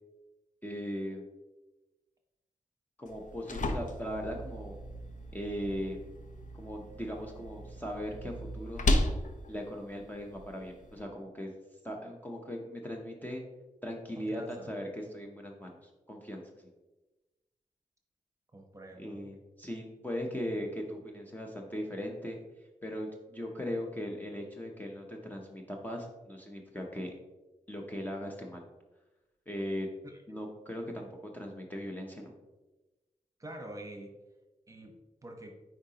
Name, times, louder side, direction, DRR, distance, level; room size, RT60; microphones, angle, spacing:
voice 1, 0.6-1.3 3.0-4.8 5.3-6.0 6.5-8.8 9.5-11.5 11.8-13.4 13.8-16.7 19.0-22.4 22.8-27.1 27.7-28.6 29.5-29.9 30.3-31.1 31.3-32.3, equal, 10° left, 0 dB, 0.7 m, -39 dB
sound 1, 3.1-11.0, left 1 dB, 65° left, 0.7 m, -35 dB
voice 2, 14.2-14.8 18.5-19.3 30.0-30.2 33.4-34.1 34.7-35.6, right 1 dB, 25° right, 3 dB, 1.0 m, -46 dB
8.5 x 4.8 x 2.9 m, 1.1 s
wide cardioid pair, 140°, 14 cm